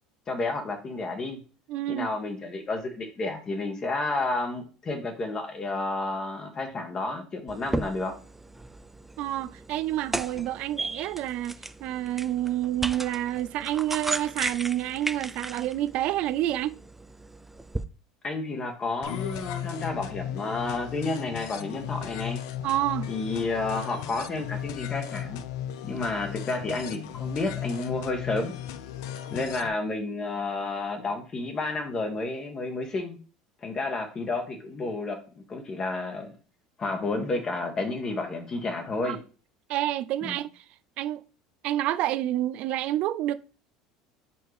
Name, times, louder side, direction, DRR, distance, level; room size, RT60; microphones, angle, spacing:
voice 1, 0.3-1.4 1.9-8.1 18.2-22.4 23.1-25.4 25.8-28.5 29.3-33.2 33.6-35.2 35.5-36.3 36.8-39.2 40.2-40.4, left 3 dB, 30° left, 1.4 m, -31 dB
voice 2, 1.7-2.1 9.2-11.5 11.8-16.8 22.6-23.1 39.0-39.2 39.7-40.6 41.0-41.2 41.6-43.3, right 13 dB, 60° right, 0.5 m, -28 dB
sound 1, 7.5-17.8, right 2 dB, 10° right, 0.5 m, -36 dB
sound 2, 19.0-29.7, left 10 dB, 80° left, 0.5 m, -36 dB
4.5 x 4.4 x 4.9 m
supercardioid pair, 100°, 2 cm